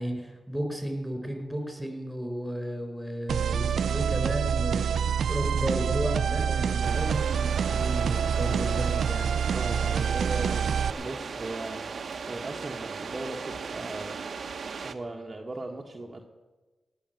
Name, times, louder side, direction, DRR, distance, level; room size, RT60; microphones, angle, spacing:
voice 1, 0.0-4.8 5.3-9.3, equal, 5° right, 5 dB, 4.9 m, -33 dB
sound 1, 3.3-10.9, right 7 dB, 80° right, 0.4 m, -26 dB
sound 2, 6.8-14.9, right 5 dB, 60° right, 1.1 m, -37 dB
voice 2, 9.5-11.8 12.2-14.2 14.8-16.2, right 2 dB, 35° right, 0 dB, 1.5 m, -37 dB
17.5 x 7.1 x 9.2 m, 1.2 s
cardioid pair, 65°, 0 cm